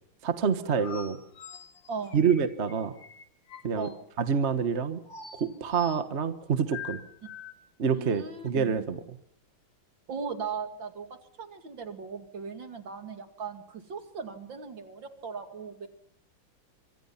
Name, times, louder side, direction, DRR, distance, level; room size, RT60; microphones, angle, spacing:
voice 1, 0.2-1.2 2.1-2.9 3.6-3.9 4.2-5.0 5.3-7.0 7.8-9.0, right 6 dB, 40° right, 10 dB, 1.4 m, -27 dB
sound 1, 0.7-3.9 5.1-6.0 6.7-7.5, left 7 dB, 70° left, 2.5 m, -44 dB
voice 2, 7.9-8.9 10.1-15.9, right 5 dB, 70° right, 7 dB, 3.1 m, -38 dB
25.5 x 24.5 x 5.8 m, 0.69 s
omnidirectional pair, 2.2 m